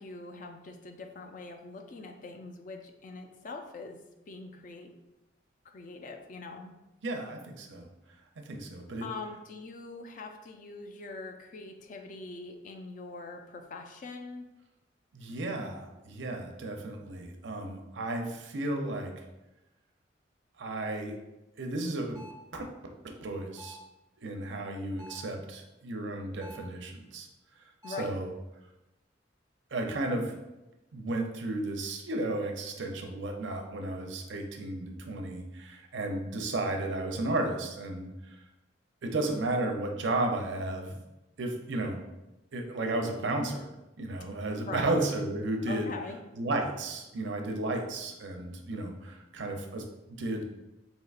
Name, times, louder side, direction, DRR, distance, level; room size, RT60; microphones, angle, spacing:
voice 1, 0.0-4.9 5.6-6.7 9.0-14.5 27.8-28.1 44.7-44.9 45.7-46.2, left 3 dB, 45° left, 5 dB, 0.4 m, -43 dB
voice 2, 7.0-7.9 8.4-9.1 15.1-19.2 20.6-21.1 21.6-22.2 22.5-22.7 23.0-23.8 24.2-27.3 28.0-28.3 29.7-30.4 30.9-38.4 39.0-41.0 41.4-42.0 42.5-45.9 46.3-50.4, right 2 dB, 80° right, 3 dB, 0.5 m, -33 dB
sound 1, 22.2-22.5 23.6-24.0 25.0-25.4 26.4-26.8 27.8-28.2, equal, 15° right, 0.5 m, -48 dB
4.3 x 2.8 x 2.4 m, 0.98 s
head